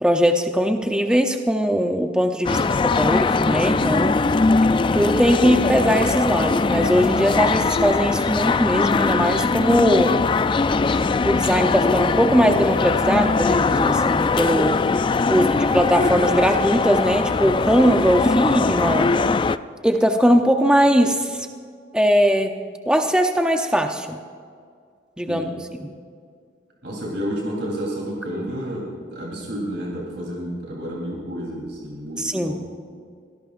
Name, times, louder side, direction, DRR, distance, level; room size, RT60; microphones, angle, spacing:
voice 1, 0.0-4.2 4.9-10.2 10.9-14.8 15.3-19.1 19.8-21.5 21.9-22.6 22.9-24.2 25.2-25.4 25.8-25.9 32.2-32.6, equal, 5° right, 4 dB, 0.6 m, -20 dB
sound 1, 2.4-19.6, left 4 dB, 25° left, 0.3 m, -21 dB
voice 2, 15.3-15.7 25.3-25.5 26.8-32.6, equal, 65° right, -3 dB, 3.5 m, -30 dB
25.0 x 17.5 x 2.5 m, 2.2 s
head